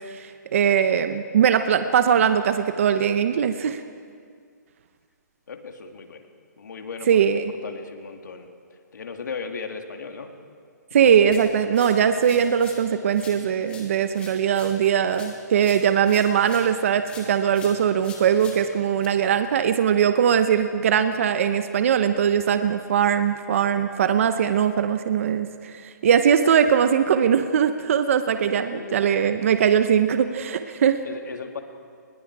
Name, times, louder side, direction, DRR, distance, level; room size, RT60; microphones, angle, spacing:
voice 1, 0.1-3.8 7.1-7.4 10.9-31.0, right 8 dB, 45° right, 9 dB, 0.9 m, -21 dB
voice 2, 5.5-6.3 6.6-7.2 7.5-8.5 8.9-10.3 11.0-11.3 28.7-29.2 31.0-31.6, left 5 dB, 75° left, 5 dB, 2.5 m, -36 dB
sound 1, 11.3-12.9 13.1-16.8 17.1-19.1, left 4 dB, 10° left, 2.3 m, -45 dB
30.0 x 21.0 x 4.8 m, 2.1 s
hypercardioid pair, 165°, 10 cm